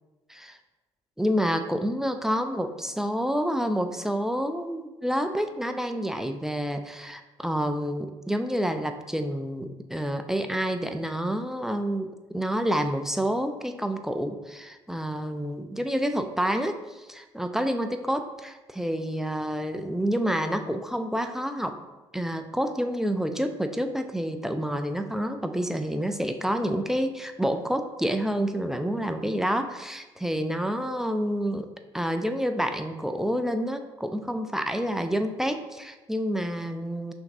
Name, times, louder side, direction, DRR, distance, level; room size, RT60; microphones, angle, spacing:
voice 1, 1.2-21.8 22.1-31.7 31.9-37.1, equal, 5° right, 7 dB, 0.4 m, -28 dB
5.7 x 2.6 x 2.6 m, 1.2 s
hypercardioid pair, 50°, 14 cm